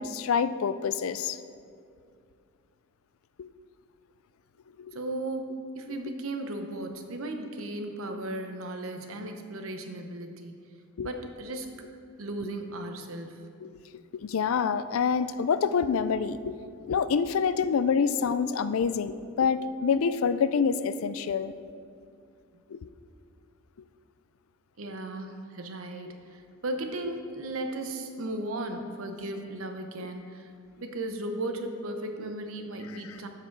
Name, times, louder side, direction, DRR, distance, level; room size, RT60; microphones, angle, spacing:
voice 1, 0.0-1.4 3.4-3.5 11.0-11.1 12.4-12.5 13.6-21.5 22.7-22.9 26.1-26.2, left 6 dB, 85° left, 13 dB, 0.4 m, -27 dB
voice 2, 4.9-10.7 11.0-11.8 12.2-13.5 24.8-30.5 30.8-33.3, right 1 dB, 90° right, 5 dB, 0.9 m, -36 dB
12.5 x 5.0 x 4.6 m, 2.3 s
head